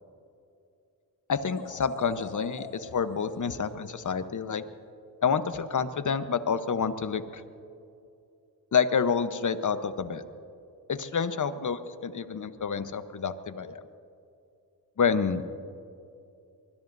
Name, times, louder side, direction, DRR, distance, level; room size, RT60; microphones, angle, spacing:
voice 1, 1.3-4.6 5.2-7.4 8.7-10.2 10.9-13.8 15.0-15.5, left 6 dB, 45° left, 11 dB, 1.1 m, -28 dB
sound 1, 1.4-4.6, left 4 dB, 80° left, 3.1 m, -46 dB
23.5 x 21.0 x 2.7 m, 2.6 s
supercardioid pair, 50°, 41 cm